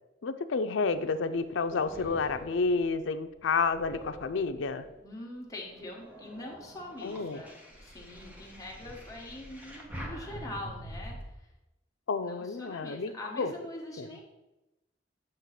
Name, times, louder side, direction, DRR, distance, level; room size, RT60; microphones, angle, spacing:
voice 1, 0.2-4.8 7.0-7.4 12.1-13.5 14.0-14.1, left 4 dB, 85° left, 10 dB, 0.5 m, -30 dB
sound 1, 0.8-5.1 5.6-11.2, equal, 10° right, 0.9 m, -46 dB
voice 2, 5.0-11.5 12.2-14.2, left 1 dB, 20° left, -2 dB, 1.3 m, -43 dB
7.8 x 3.0 x 5.8 m, 0.99 s
head